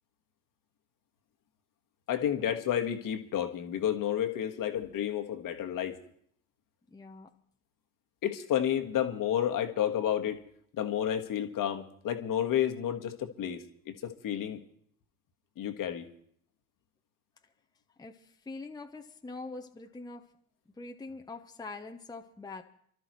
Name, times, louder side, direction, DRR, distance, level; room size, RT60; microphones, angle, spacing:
voice 1, 2.1-6.0 8.2-10.4 10.7-14.6 15.6-16.1, left 10 dB, 40° left, 6 dB, 1.6 m, -31 dB
voice 2, 6.9-7.3 18.0-20.3 20.7-22.6, left 3 dB, 10° left, 5 dB, 1.0 m, -44 dB
28.0 x 12.5 x 3.2 m, 0.65 s
figure-of-eight pair, 65°, 48 cm